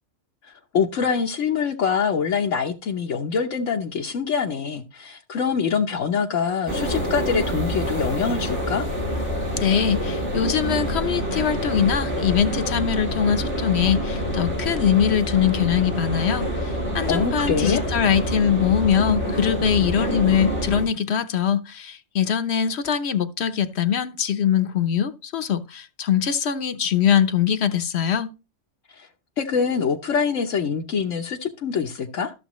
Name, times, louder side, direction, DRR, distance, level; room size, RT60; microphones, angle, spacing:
voice 1, 0.7-8.9 17.1-17.8 29.4-32.3, left 6 dB, 85° left, 1.3 m, -24 dB
sound 1, 6.7-20.9, equal, 70° right, 3.6 m, -26 dB
voice 2, 9.6-28.3, left 8 dB, 65° left, 1.1 m, -22 dB
14.0 x 6.8 x 3.1 m
omnidirectional pair, 1.3 m